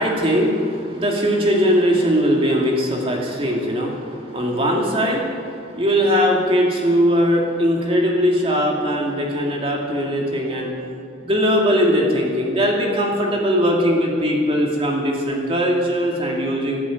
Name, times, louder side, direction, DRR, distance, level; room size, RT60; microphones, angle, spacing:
voice 1, 0.0-10.7 11.2-16.8, equal, 30° right, -1 dB, 2.5 m, -20 dB
13.0 x 12.5 x 9.1 m, 2.5 s
head